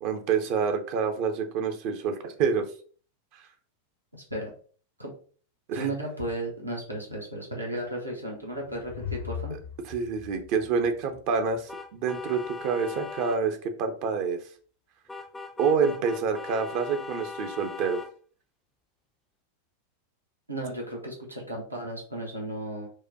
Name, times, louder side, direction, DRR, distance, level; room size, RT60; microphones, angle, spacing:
voice 1, 0.0-2.6 3.3-3.4 5.7-5.9 9.5-9.6 9.8-14.4 15.6-18.0, right 5 dB, 45° right, 6 dB, 0.5 m, -27 dB
voice 2, 4.1-4.5 5.0-5.1 5.7-9.6 20.5-22.9, right 1 dB, 80° right, 0 dB, 0.8 m, -34 dB
sound 1, 8.2-11.6, left 8 dB, 55° left, 0.6 m, -40 dB
sound 2, 11.7-13.4 15.1-18.1, left 4 dB, 10° left, 0.4 m, -39 dB
4.6 x 2.1 x 2.7 m, 0.43 s
figure-of-eight pair, 90°, 0 cm